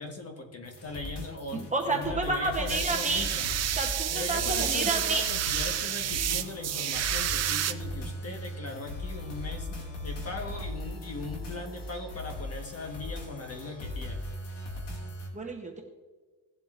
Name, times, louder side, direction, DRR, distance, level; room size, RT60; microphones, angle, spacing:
voice 1, 0.0-3.5 4.1-14.2, left 2 dB, 35° left, 3 dB, 1.3 m, -39 dB
sound 1, 0.7-15.3, left 1 dB, 70° left, 2.4 m, -39 dB
voice 2, 1.7-3.2 3.8-5.2 15.3-15.8, right 2 dB, 15° right, 0 dB, 0.9 m, -30 dB
sound 2, 2.5-7.7, right 11 dB, 40° right, 0.4 m, -30 dB
17.5 x 7.5 x 2.5 m, 1.4 s
cardioid pair, 160°, 44 cm